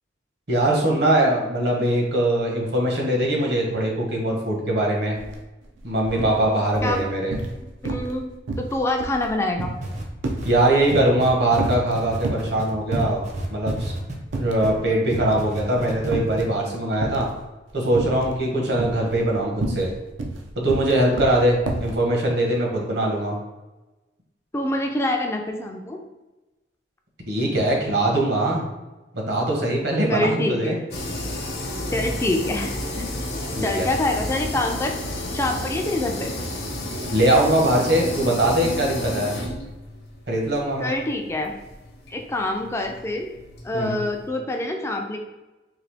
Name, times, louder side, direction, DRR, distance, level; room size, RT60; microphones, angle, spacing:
voice 1, 0.5-5.2 5.8-7.3 10.4-13.2 13.5-13.9 14.3-17.3 17.7-19.9 20.6-23.4 27.3-28.7 29.1-30.8 33.5-33.9 37.1-39.3 40.3-40.9 43.7-44.0, right 1 dB, 60° right, -1 dB, 1.0 m, -22 dB
sound 1, 5.2-5.3 5.6-6.4 6.7-7.6 7.8-8.2 8.5-11.3 11.6-12.5 12.9-13.3 13.7-13.8 14.3-14.8 15.1-16.5 17.0-17.4 17.9-18.4 18.7-22.0, right 2 dB, 85° right, 0.5 m, -29 dB
voice 2, 7.8-8.3 8.6-9.8 24.5-26.0 30.1-30.8 31.9-32.7 33.0-33.2 33.6-35.0 35.3-36.3 40.8-41.5 42.1-43.3 43.6-45.2, left 2 dB, 15° left, 3 dB, 0.3 m, -25 dB
sound 2, 9.8-14.7 15.1-16.1 16.4-16.5, right 1 dB, 40° right, 0.6 m, -32 dB
sound 3, 30.9-44.3, left 1 dB, 55° left, 0.7 m, -32 dB
3.8 x 2.7 x 3.3 m, 1.1 s
head